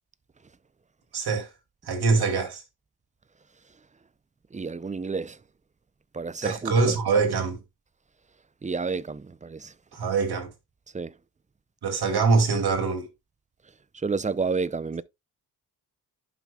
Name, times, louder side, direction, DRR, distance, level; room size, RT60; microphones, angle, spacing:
voice 1, 1.1-1.5 1.9-2.6 6.4-7.6 9.9-10.5 11.8-13.1, right 4 dB, 70° right, 2.6 m, -23 dB
voice 2, 4.5-5.4 6.1-7.0 8.6-9.7 10.9-11.2 13.9-15.0, right 4 dB, 20° right, 0.5 m, -30 dB
11.0 x 5.6 x 2.3 m
cardioid pair, 75°, 40 cm